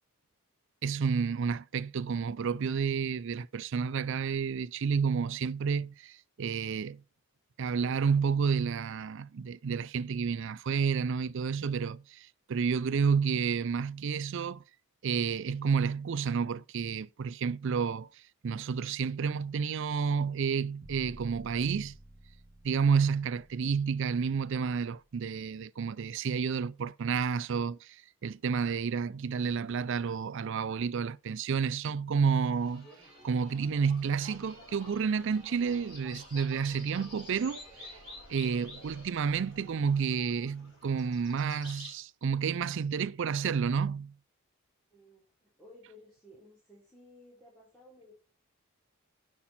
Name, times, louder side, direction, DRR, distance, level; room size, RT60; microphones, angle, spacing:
voice 1, 0.8-7.0 7.6-14.6 15.0-18.1 18.4-21.9 22.6-32.9 33.2-38.0 38.3-44.1, right 6 dB, 60° right, 0.4 m, -30 dB
sound 1, 20.8-24.9, right 1 dB, 30° right, 2.0 m, -52 dB
sound 2, 32.3-41.9, left 1 dB, 25° left, 6.1 m, -50 dB
voice 2, 44.9-48.1, left 1 dB, 5° left, 3.3 m, -56 dB
10.0 x 6.0 x 4.1 m
head